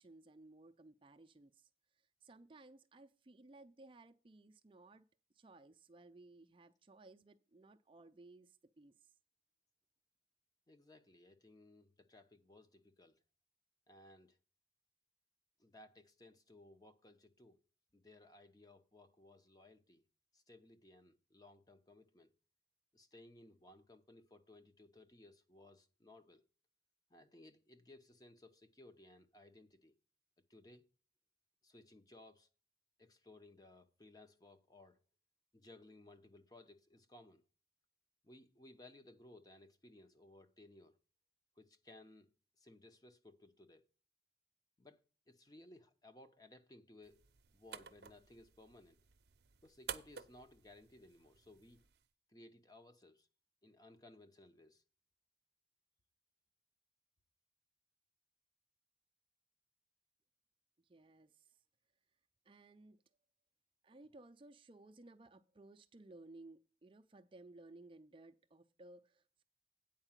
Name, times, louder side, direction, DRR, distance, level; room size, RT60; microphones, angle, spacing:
voice 1, 0.0-1.7 1.9-5.0 5.3-9.1 60.8-61.6 62.4-63.0 63.8-69.4, right 2 dB, 30° right, 0.4 m, -59 dB
voice 2, 10.7-13.2 13.9-14.4 15.6-17.6 17.9-20.0 20.3-22.3 22.9-26.4 27.1-29.9 30.5-30.8 31.6-32.5 33.0-35.0 35.5-37.4 38.2-41.0 41.6-43.9 44.8-47.3 47.5-49.0 49.6-51.8 52.3-53.3 53.6-54.8, left 2 dB, 20° left, 0.7 m, -61 dB
sound 1, 47.0-52.1, right 8 dB, 70° right, 0.6 m, -52 dB
8.9 x 4.7 x 7.3 m
head